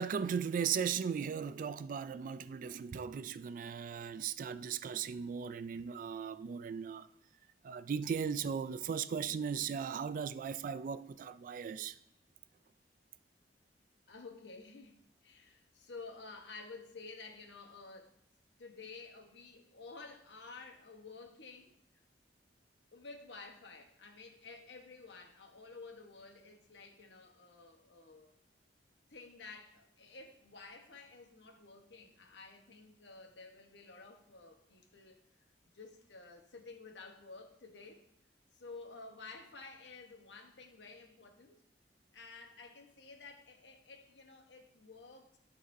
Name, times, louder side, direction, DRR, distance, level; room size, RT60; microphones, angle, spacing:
voice 1, 0.0-7.1 7.6-12.0, right 7 dB, 50° right, 0.3 m, -37 dB
voice 2, 14.1-18.2 18.6-21.8 22.9-28.3 29.1-35.2 35.7-38.1 38.5-41.6 42.1-45.4, left 3 dB, 85° left, 1.1 m, -52 dB
12.0 x 4.1 x 2.7 m
head